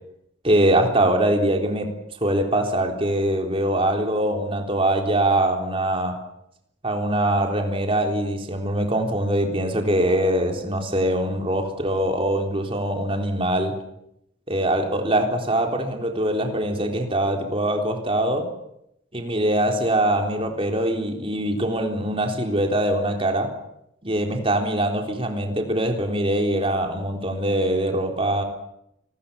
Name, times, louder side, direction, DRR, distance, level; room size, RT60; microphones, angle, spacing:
voice 1, 0.4-2.0 2.2-6.2 6.8-13.8 14.5-18.5 19.1-23.6 24.0-28.4, right 1 dB, 30° right, 4 dB, 3.8 m, -23 dB
28.0 x 20.5 x 7.1 m, 0.77 s
head